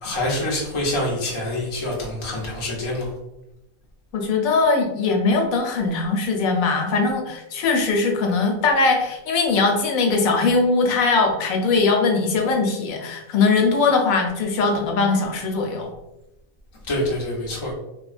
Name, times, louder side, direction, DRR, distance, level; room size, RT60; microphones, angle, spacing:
voice 1, 0.0-3.1 16.9-17.7, left 1 dB, 40° left, -3 dB, 0.4 m, -26 dB
voice 2, 4.1-15.9, left 4 dB, 80° left, 3 dB, 1.0 m, -20 dB
2.9 x 2.2 x 2.4 m, 0.91 s
omnidirectional pair, 1.5 m